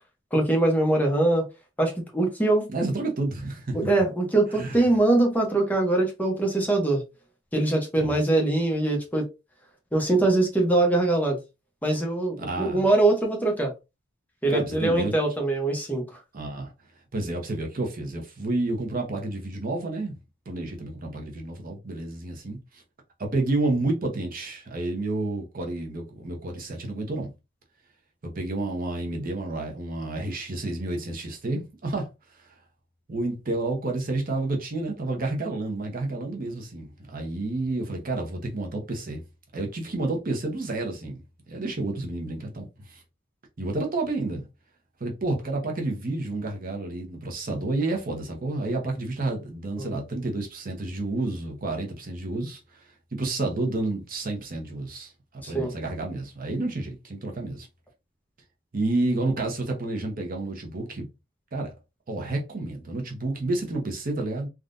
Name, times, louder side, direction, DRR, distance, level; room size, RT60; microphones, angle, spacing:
voice 1, 0.3-1.4 1.8-2.6 3.7-7.0 7.5-9.2 9.9-11.4 11.8-13.7 14.4-16.0 49.8-50.0 55.4-55.7, right 2 dB, 10° left, 0.8 m, -23 dB
voice 2, 2.7-3.8 4.5-4.8 8.0-8.1 12.4-12.9 14.5-15.1 16.3-16.7 17.1-20.2 20.5-22.8 23.2-27.3 28.3-32.1 32.3-32.5 33.1-39.2 39.5-41.2 41.5-43.0 43.6-44.4 45.0-52.8 53.1-57.7 58.7-61.1 61.5-61.7 62.1-64.5, right 2 dB, 45° right, 0.8 m, -30 dB
3.5 x 2.3 x 2.5 m
head